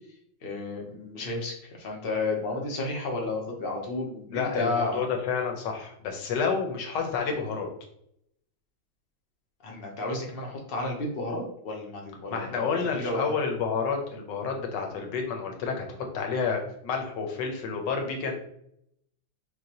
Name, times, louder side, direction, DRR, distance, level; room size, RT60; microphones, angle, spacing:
voice 1, 0.4-5.0 9.6-13.3, left 2 dB, 50° left, 0 dB, 0.6 m, -32 dB
voice 2, 4.3-7.7 12.3-18.5, left 5 dB, 70° left, 2 dB, 1.4 m, -30 dB
6.3 x 2.4 x 2.9 m, 0.74 s
omnidirectional pair, 2.1 m